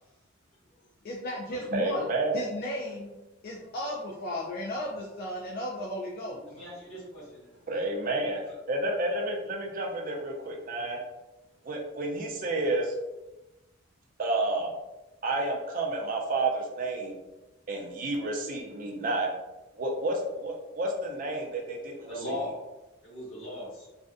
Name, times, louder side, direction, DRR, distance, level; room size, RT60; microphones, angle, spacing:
voice 1, 1.0-2.1 2.3-3.1 3.4-6.4, left 1 dB, 45° left, -2 dB, 0.3 m, -34 dB
voice 2, 1.7-2.4 7.7-8.4 8.7-11.0 11.7-12.9 14.2-14.7 15.2-17.2 17.7-19.3 19.8-22.1, right 2 dB, 40° right, 1 dB, 0.4 m, -30 dB
voice 3, 6.5-7.5 8.5-8.6 22.1-22.5 23.0-23.9, left 1 dB, 75° left, -7 dB, 1.3 m, -38 dB
2.5 x 2.1 x 2.4 m, 1.0 s
head